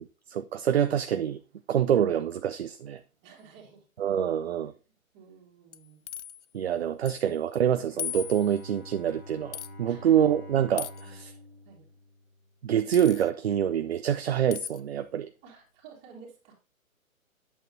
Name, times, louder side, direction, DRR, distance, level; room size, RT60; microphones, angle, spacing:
voice 1, 0.0-1.4 1.7-3.0 4.0-4.7 6.5-11.3 12.6-15.3, right 9 dB, 50° right, 0.6 m, -26 dB
voice 2, 3.2-3.9 5.1-6.0 6.7-6.8 9.9-10.3 11.6-11.9 15.4-16.5, right 6 dB, 25° right, 2.9 m, -52 dB
sound 1, 5.7-6.4 7.1-7.3 7.5-7.6 8.0-8.7 9.5-9.7 10.8-11.1 12.9-13.3 14.5-14.8, left 10 dB, 55° left, 0.6 m, -37 dB
Bowed string instrument, 7.9-12.9, left 1 dB, 20° left, 2.7 m, -47 dB
8.2 x 7.7 x 2.7 m
figure-of-eight pair, 135°, 42 cm